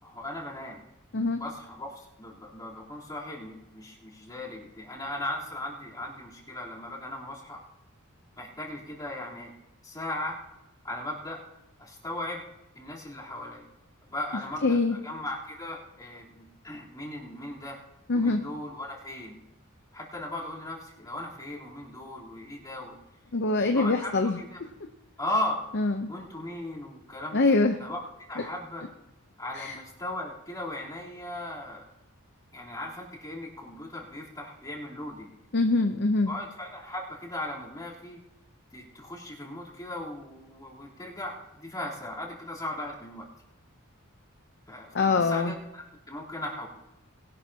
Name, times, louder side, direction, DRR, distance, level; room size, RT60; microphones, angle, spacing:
voice 1, 0.0-0.8 1.4-7.6 8.4-9.5 9.8-10.4 10.8-11.4 11.8-12.4 12.7-13.7 14.1-17.8 18.1-19.4 19.9-23.0 23.6-24.6 25.2-25.6 26.1-28.0 28.3-28.8 29.4-31.8 32.5-35.4 36.3-38.2 38.7-43.3 44.7-46.7, left 1 dB, 20° left, -5 dB, 3.7 m, -37 dB
voice 2, 14.6-14.9 18.1-18.4 23.3-24.4 25.7-26.1 27.3-27.7 29.6-29.7 35.5-36.3 44.9-45.5, left 3 dB, 55° left, 6 dB, 0.8 m, -24 dB
21.5 x 11.5 x 2.9 m, 0.93 s
head